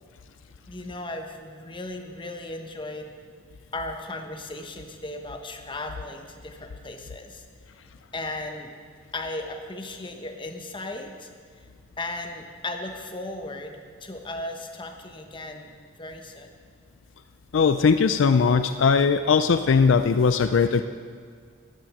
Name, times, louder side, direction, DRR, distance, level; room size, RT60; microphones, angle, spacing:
voice 1, 0.7-3.1 3.7-7.4 8.1-8.7 9.1-11.3 12.0-15.7 16.0-16.5, left 2 dB, 25° left, 4 dB, 1.1 m, -36 dB
voice 2, 17.5-20.8, left 5 dB, 65° left, 10 dB, 0.4 m, -19 dB
13.5 x 10.0 x 6.1 m, 2.1 s
head